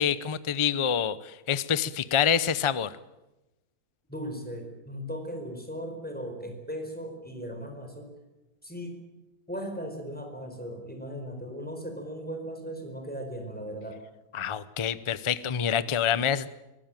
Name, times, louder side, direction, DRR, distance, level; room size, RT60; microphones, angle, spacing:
voice 1, 0.0-2.9 14.3-16.5, left 8 dB, 35° left, 15 dB, 0.4 m, -26 dB
voice 2, 4.1-8.1 8.6-9.0 9.5-14.0, equal, 5° left, 4 dB, 4.6 m, -37 dB
24.0 x 16.5 x 9.0 m, 1.0 s
omnidirectional pair, 1.8 m